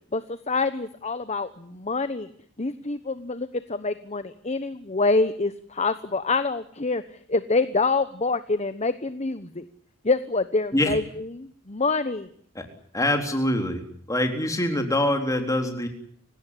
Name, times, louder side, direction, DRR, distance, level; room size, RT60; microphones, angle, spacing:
voice 1, 0.1-2.3 2.6-9.6 10.0-12.3, left 3 dB, 30° left, 12 dB, 1.1 m, -26 dB
voice 2, 12.9-13.8 14.1-15.9, left 1 dB, 15° left, 4 dB, 3.9 m, -24 dB
30.0 x 17.0 x 9.9 m, 0.62 s
head